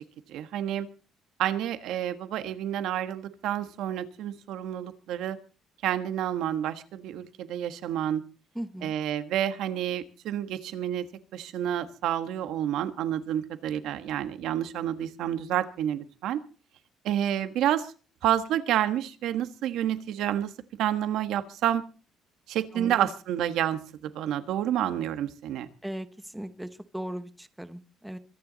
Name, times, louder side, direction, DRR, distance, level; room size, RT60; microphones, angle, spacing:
voice 1, 0.3-0.9 1.4-5.4 5.8-8.2 8.8-11.1 11.3-16.4 17.0-17.9 18.2-20.5 20.8-21.8 22.5-25.7, right 11 dB, 75° right, 10 dB, 1.4 m, -29 dB
voice 2, 8.5-8.9 22.7-23.1 25.8-28.2, right 1 dB, 5° right, 11 dB, 0.9 m, -38 dB
23.5 x 10.5 x 4.0 m, 0.37 s
cardioid pair, 155°, 0 cm